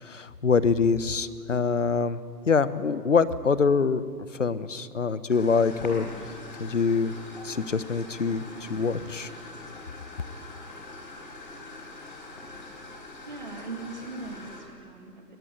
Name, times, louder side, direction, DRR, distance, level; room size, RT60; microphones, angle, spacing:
voice 1, 0.0-2.2 2.5-6.1 6.6-7.2 7.4-9.3, left 5 dB, 50° left, 15 dB, 0.9 m, -25 dB
sound 1, 5.3-14.6, left 2 dB, 30° left, 3.9 m, -43 dB
voice 2, 13.3-15.4, right 3 dB, 25° right, 3 dB, 2.1 m, -40 dB
21.5 x 20.5 x 9.2 m, 2.5 s
hypercardioid pair, 180°, 49 cm